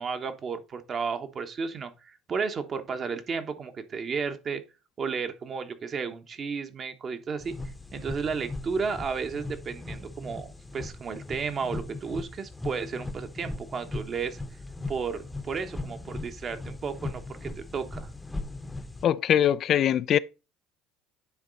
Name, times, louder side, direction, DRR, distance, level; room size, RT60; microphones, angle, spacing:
voice 1, 0.0-4.6 5.0-7.5 7.9-14.4 14.9-18.1, right 5 dB, 40° right, 1.1 m, -33 dB
sound 1, 7.4-19.0, left 2 dB, 10° left, 0.8 m, -38 dB
voice 2, 19.0-20.2, left 10 dB, 50° left, 0.3 m, -22 dB
9.5 x 3.7 x 3.9 m
hypercardioid pair, 80°, 0 cm